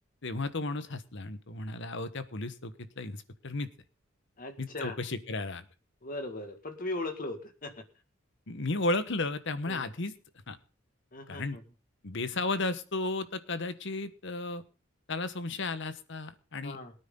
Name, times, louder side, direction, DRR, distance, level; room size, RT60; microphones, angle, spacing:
voice 1, 0.2-3.7 4.6-5.6 8.5-10.1 10.5-10.6 11.3-11.6 12.0-14.6 15.1-16.8, left 2 dB, 65° left, 12 dB, 1.3 m, -34 dB
voice 2, 4.4-5.0 6.0-7.8 9.7-9.8 11.1-11.6 16.6-16.9, left 2 dB, 45° left, 7 dB, 2.1 m, -38 dB
22.5 x 9.6 x 3.9 m, 0.35 s
head